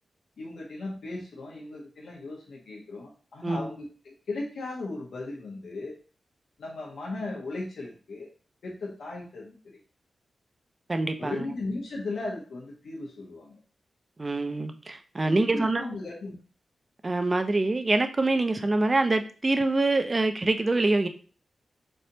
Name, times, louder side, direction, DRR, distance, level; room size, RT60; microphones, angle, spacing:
voice 1, 0.4-6.0 6.6-8.3 8.6-9.6 11.2-13.6 15.2-16.4, left 2 dB, 85° left, -3 dB, 1.0 m, -36 dB
voice 2, 10.9-11.4 14.2-15.8 17.0-21.1, right 2 dB, 25° right, 8 dB, 0.4 m, -25 dB
4.0 x 3.3 x 2.7 m, 0.38 s
wide cardioid pair, 130°, 0 cm